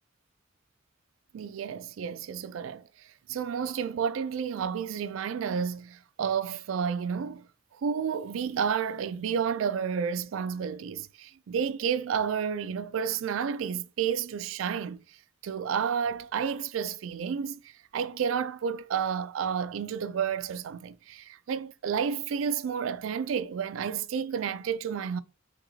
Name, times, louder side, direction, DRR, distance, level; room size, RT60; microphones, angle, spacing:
voice 1, 1.3-2.8 3.3-7.5 7.8-15.0 15.4-25.2, right 7 dB, 70° right, 0.3 m, -31 dB
5.6 x 2.9 x 2.7 m
head